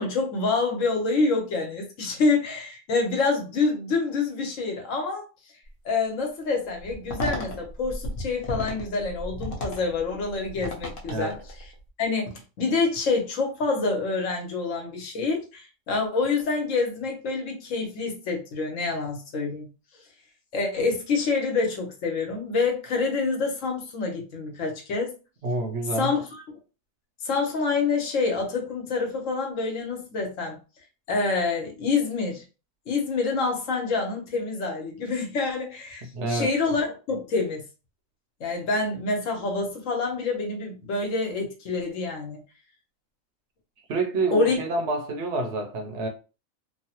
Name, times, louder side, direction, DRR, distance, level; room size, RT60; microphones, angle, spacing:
voice 1, 0.0-5.3 5.8-11.3 12.0-19.7 20.5-25.1 26.0-26.6 27.2-30.6 31.1-32.4 32.9-37.6 38.4-42.4 44.3-44.5, left 4 dB, 70° left, 1.2 m, -27 dB
sound 1, 6.8-11.8, left 1 dB, 50° left, 0.9 m, -34 dB
voice 2, 25.4-26.1 36.0-36.5 43.9-46.1, right 2 dB, 65° right, 0.8 m, -28 dB
3.0 x 2.0 x 2.8 m
omnidirectional pair, 1.4 m